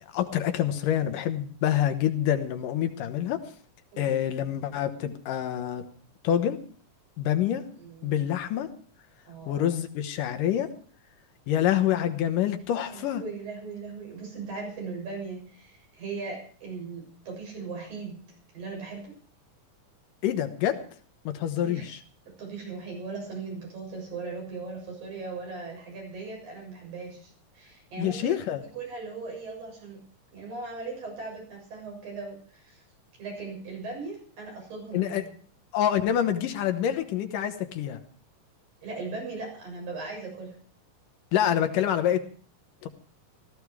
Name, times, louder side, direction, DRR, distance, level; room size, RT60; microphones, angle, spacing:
voice 1, 0.1-3.5 4.0-5.9 6.2-6.6 7.2-7.7 8.0-8.7 9.5-10.7 11.5-13.2 20.2-20.8 21.2-22.0 28.0-28.6 34.9-35.3 35.7-38.0 41.3-42.2 42.8-42.9, left 10 dB, 75° left, 8 dB, 2.8 m, -26 dB
voice 2, 7.7-8.3 9.3-9.7 12.9-18.2 18.5-19.1 21.6-21.8 22.4-28.4 28.7-30.0 30.3-32.8 33.2-35.3 38.8-40.6, right 4 dB, 90° right, 0 dB, 8.9 m, -38 dB
16.0 x 14.5 x 4.8 m, 0.43 s
omnidirectional pair, 3.9 m